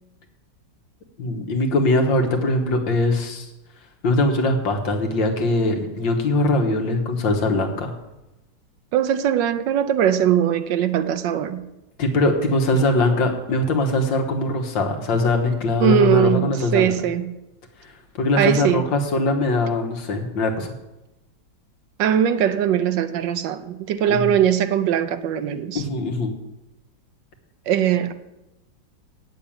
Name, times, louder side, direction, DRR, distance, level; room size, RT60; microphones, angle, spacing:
voice 1, 1.2-3.5 4.0-7.9 12.0-16.9 18.2-20.7 24.1-24.3 25.8-26.3, left 2 dB, 80° left, 2.1 m, -21 dB
voice 2, 8.9-11.6 15.8-17.3 18.3-18.8 22.0-25.8 27.7-28.1, right 9 dB, 80° right, 1.4 m, -20 dB
8.9 x 7.0 x 8.7 m
omnidirectional pair, 2.0 m